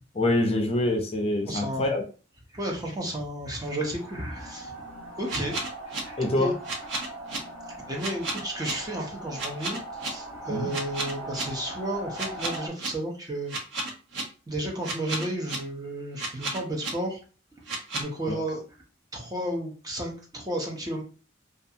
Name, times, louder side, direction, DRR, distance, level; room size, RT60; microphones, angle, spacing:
voice 1, 0.1-2.0 6.2-6.5 10.5-10.7 18.3-18.4, left 1 dB, 30° left, 2 dB, 0.5 m, -25 dB
voice 2, 1.5-1.9 2.5-4.7 5.2-5.7 6.0-6.5 7.9-13.5 14.5-17.2 17.6-17.7 17.9-18.6 19.1-21.0, right 1 dB, 20° right, 0 dB, 0.6 m, -32 dB
sound 1, 3.6-12.7, right 1 dB, 5° left, 1.2 m, -40 dB
sound 2, 5.3-6.0 6.6-7.4 8.0-8.7 9.4-10.1 10.7-11.4 12.1-12.9 13.5-14.2 14.8-15.6 16.2-16.9 17.7-18.0, right 3 dB, 65° right, 0.7 m, -32 dB
2.6 x 2.3 x 2.6 m, 0.37 s
head